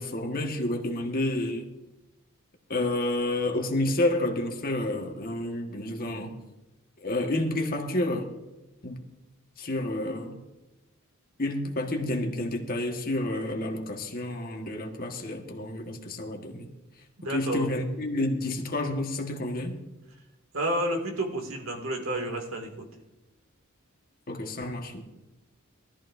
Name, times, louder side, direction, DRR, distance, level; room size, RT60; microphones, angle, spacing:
voice 1, 0.0-1.7 2.7-6.3 7.0-8.3 8.8-9.0 9.6-10.4 11.4-16.7 17.3-19.7 24.3-25.0, left 1 dB, 45° left, 1.6 m, -29 dB
voice 2, 17.2-17.7 20.5-22.8, right 1 dB, 75° right, 2.4 m, -30 dB
20.0 x 13.5 x 2.7 m
head